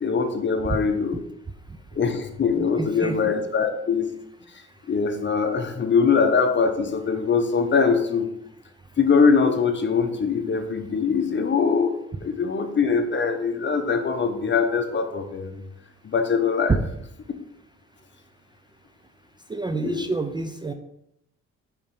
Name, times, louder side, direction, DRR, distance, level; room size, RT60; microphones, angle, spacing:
voice 1, 0.0-1.2 1.9-4.1 4.9-8.3 9.0-11.9 12.2-15.6 16.0-16.8 19.8-20.1, left 5 dB, 40° left, 6 dB, 1.0 m, -22 dB
voice 2, 2.5-3.2 19.5-20.7, right 3 dB, 15° right, 7 dB, 0.4 m, -29 dB
5.2 x 4.3 x 5.5 m, 0.79 s
cardioid pair, 90°, 30 cm